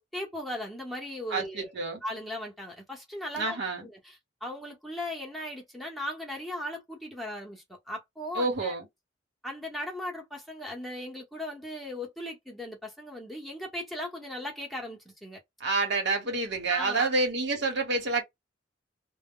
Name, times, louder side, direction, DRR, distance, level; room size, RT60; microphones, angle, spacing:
voice 1, 0.0-1.8 2.0-8.7 9.4-15.4 16.7-17.1, left 1 dB, ahead, 0.9 m, -38 dB
voice 2, 1.3-2.0 3.3-3.9 8.3-8.8 15.6-18.2, right 3 dB, 65° right, 1.1 m, -28 dB
2.2 x 2.1 x 3.6 m
head